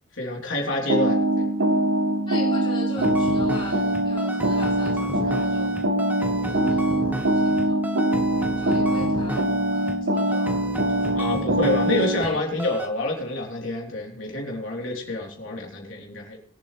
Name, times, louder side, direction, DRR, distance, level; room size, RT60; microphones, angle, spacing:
voice 1, 0.1-1.5 8.9-9.1 11.1-16.4, left 2 dB, 75° left, -1 dB, 3.6 m, -28 dB
sound 1, 0.9-12.2, right 1 dB, 65° right, 1.6 m, -23 dB
voice 2, 2.3-5.8 6.5-7.8 8.6-11.3 12.1-12.4, left 2 dB, 25° left, -4 dB, 3.5 m, -41 dB
sound 2, 3.0-12.3 12.6-12.9, right 1 dB, 10° right, 1.2 m, -32 dB
22.5 x 8.0 x 3.3 m, 0.63 s
head